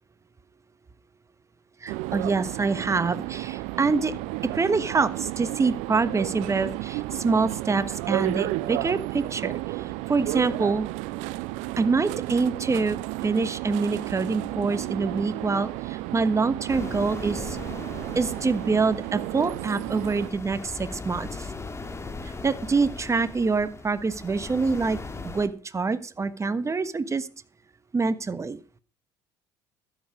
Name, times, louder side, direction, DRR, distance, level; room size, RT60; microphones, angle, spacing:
voice 1, 1.8-4.1 4.4-10.9 11.8-13.0 13.2-17.6 18.1-21.5 22.2-25.0 25.2-27.3 27.9-28.6, right 4 dB, 25° right, 14 dB, 1.3 m, -26 dB
sound 1, 1.9-20.3, right 19 dB, 65° right, 0.6 m, -32 dB
sound 2, 16.7-25.5, left 3 dB, 20° left, 2.1 m, -39 dB
13.0 x 9.9 x 5.0 m, 0.35 s
figure-of-eight pair, 60°, 13 cm